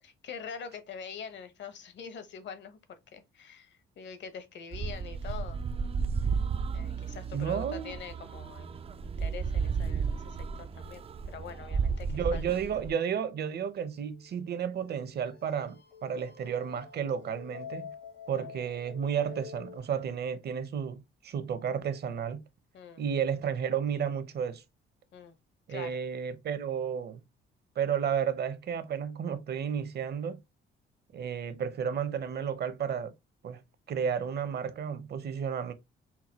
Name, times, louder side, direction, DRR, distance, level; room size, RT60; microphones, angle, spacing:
voice 1, 0.0-5.6 6.7-8.8 9.0-12.4 16.1-16.2 18.3-18.5 22.7-23.0 25.1-25.4 25.7-26.0, left 7 dB, 65° left, 1.1 m, -44 dB
sound 1, 4.7-12.9, right 5 dB, 30° right, 0.3 m, -33 dB
voice 2, 7.3-7.9 12.1-17.9 18.3-22.4 23.0-24.6 25.7-27.2 27.8-30.4 31.1-33.1 33.4-33.6 33.9-35.7, right 7 dB, 55° right, 0.8 m, -32 dB
sound 2, 13.5-19.8, left 7 dB, 80° left, 2.2 m, -48 dB
5.7 x 2.2 x 2.9 m
cardioid pair, 90°, 20 cm